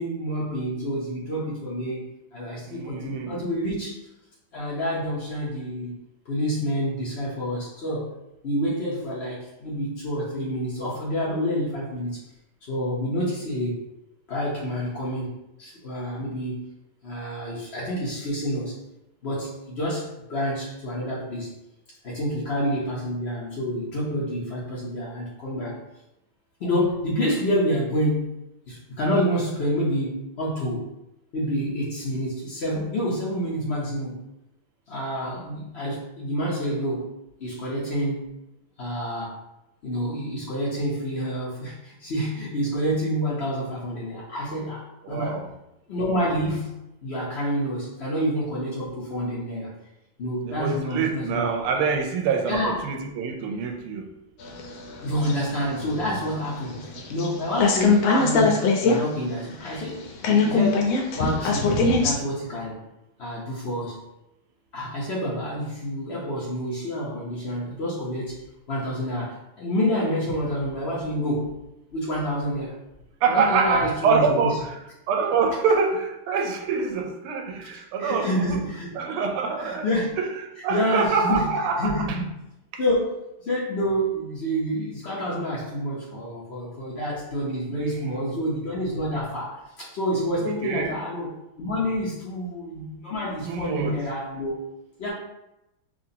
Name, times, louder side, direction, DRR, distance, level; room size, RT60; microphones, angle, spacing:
voice 1, 0.0-2.0 2.3-4.0 4.5-6.0 6.2-8.2 8.4-12.2 12.7-13.8 14.3-16.7 17.0-18.7 19.2-21.6 22.0-25.8 26.6-28.4 28.7-30.9 31.3-34.2 34.9-37.1 37.4-38.2 38.8-39.4 39.8-45.4 45.9-49.7 50.2-51.4 52.5-52.8 55.0-60.9 61.2-61.7 62.0-62.8 63.2-64.0 64.7-68.4 68.7-71.6 71.9-72.8 73.3-74.6 77.7-78.9 79.6-80.1 80.7-81.5 81.8-82.3 82.8-94.5 95.0-95.1, equal, 60° left, -6 dB, 0.6 m, -28 dB
voice 2, 2.7-3.4 45.0-45.5 50.4-54.1 56.7-57.0 73.2-74.8 75.1-78.6 79.0-79.9 80.2-80.3 80.6-81.9 87.7-88.1 90.4-91.0 93.4-94.0, right 5 dB, 85° right, 3 dB, 1.6 m, -25 dB
sound 1, 54.4-57.3 57.5-59.0 59.3-59.4 59.6-62.1, left 4 dB, 75° left, 1.4 m, -22 dB
6.1 x 2.5 x 2.8 m, 0.90 s
omnidirectional pair, 2.4 m